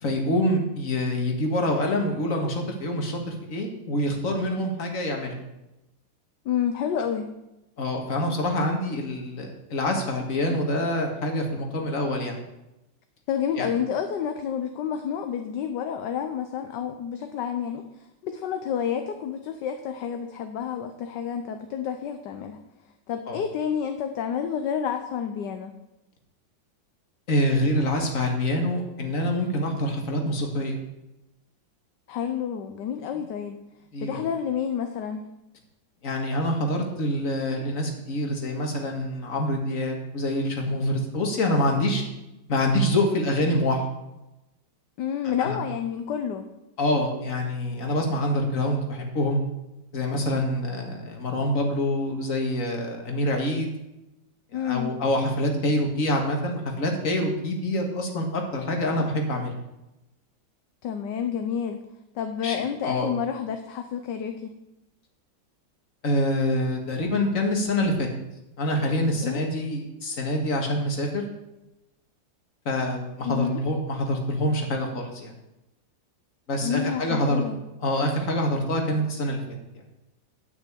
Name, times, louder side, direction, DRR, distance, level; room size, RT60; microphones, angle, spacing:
voice 1, 0.0-5.3 7.8-12.4 13.5-13.7 23.3-23.4 27.3-30.8 33.9-34.3 36.0-42.0 42.5-43.8 45.4-45.6 46.8-49.4 49.9-53.7 54.5-59.5 62.4-63.1 66.0-68.1 68.6-71.3 72.7-75.3 76.5-77.4 77.8-79.4, left 1 dB, 45° left, 2 dB, 2.2 m, -26 dB
voice 2, 6.4-7.3 13.3-22.6 23.1-25.7 32.1-33.6 34.0-35.2 45.0-46.5 54.5-54.9 60.8-61.8 62.1-64.5 69.2-69.5 73.2-73.6 76.6-77.6, left 8 dB, 65° left, 6 dB, 1.3 m, -29 dB
10.0 x 6.2 x 8.4 m, 0.94 s
omnidirectional pair, 2.1 m